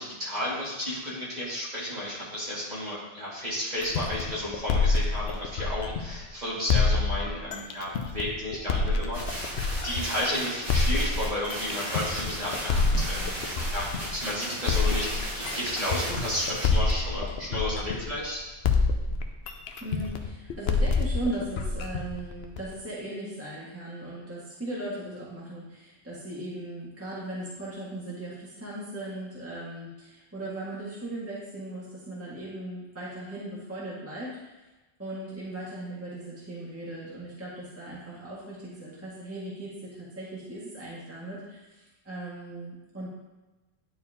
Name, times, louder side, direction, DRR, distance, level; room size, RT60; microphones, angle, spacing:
voice 1, 0.0-9.5 9.8-18.4, left 1 dB, 40° right, -7 dB, 2.3 m, -32 dB
sound 1, 3.8-6.2 6.7-10.2 10.7-14.2 14.7-18.3 18.6-22.7, left 4 dB, 70° left, 0.9 m, -27 dB
sound 2, 9.1-16.7, right 1 dB, 55° right, 2.9 m, -36 dB
voice 2, 19.8-34.5 35.0-43.1, right 1 dB, 15° right, -7 dB, 1.8 m, -38 dB
10.0 x 4.5 x 3.6 m, 1.1 s
omnidirectional pair, 1.1 m